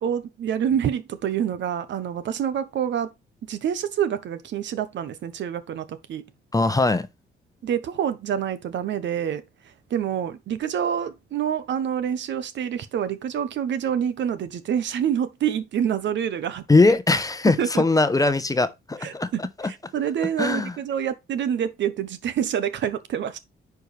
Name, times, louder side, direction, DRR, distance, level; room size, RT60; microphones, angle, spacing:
voice 1, 0.0-3.1 3.5-6.2 7.6-9.4 9.9-16.6 17.6-17.8 19.0-23.4, right 9 dB, 65° right, 0.9 m, -27 dB
voice 2, 6.5-7.1 16.7-19.7 20.4-20.8, left 3 dB, 15° left, 0.8 m, -21 dB
10.0 x 4.6 x 3.3 m
cardioid pair, 90°, 20 cm